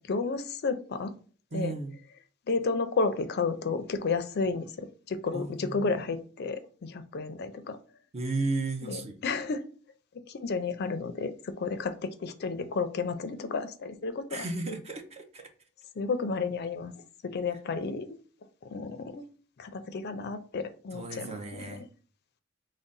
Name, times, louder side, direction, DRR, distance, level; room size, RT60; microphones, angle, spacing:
voice 1, 0.1-1.1 1.5-1.8 2.5-7.8 8.8-9.6 10.3-11.3 11.6-14.5 16.0-16.9 17.3-18.1 18.7-19.2 19.6-21.9, left 4 dB, 50° left, 0.4 m, -32 dB
voice 2, 1.5-1.9 5.3-5.9 8.1-9.2 14.3-15.5 20.9-21.8, right 3 dB, 30° right, 0.6 m, -34 dB
3.7 x 2.1 x 3.9 m
head